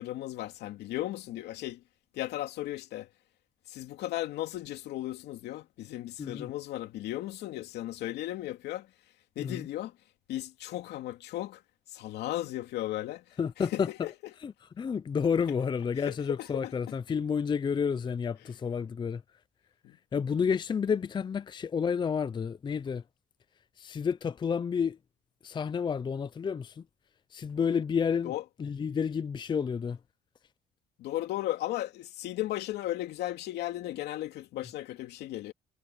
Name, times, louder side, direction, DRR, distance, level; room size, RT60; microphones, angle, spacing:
voice 1, 0.0-1.8 2.1-3.1 3.7-8.9 9.4-9.9 10.3-11.6 11.9-13.2 13.6-14.1 15.9-16.7 19.8-20.0 28.2-28.4 31.0-35.5, left 15 dB, 80° left, 2.7 m, -36 dB
voice 2, 6.2-6.5 9.4-9.7 13.4-13.9 14.4-19.2 20.1-23.0 23.8-25.0 25.4-26.8 27.3-28.3 28.6-30.0, left 6 dB, 25° left, 0.5 m, -30 dB
cardioid pair, 110°, 17 cm